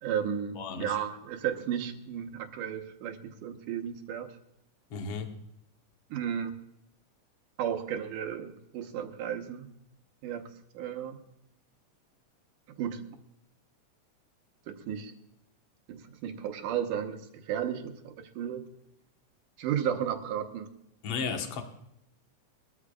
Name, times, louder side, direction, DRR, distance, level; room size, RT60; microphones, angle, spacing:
voice 1, 0.0-4.3 6.1-6.5 7.6-9.7 10.2-11.2 12.8-13.1 14.7-15.1 15.9-18.7 19.6-20.7, right 9 dB, 80° right, 5 dB, 2.6 m, -34 dB
voice 2, 0.6-1.0 4.9-5.3 21.0-21.6, left 5 dB, 55° left, 4 dB, 2.0 m, -34 dB
22.5 x 13.5 x 2.4 m, 0.79 s
omnidirectional pair, 3.7 m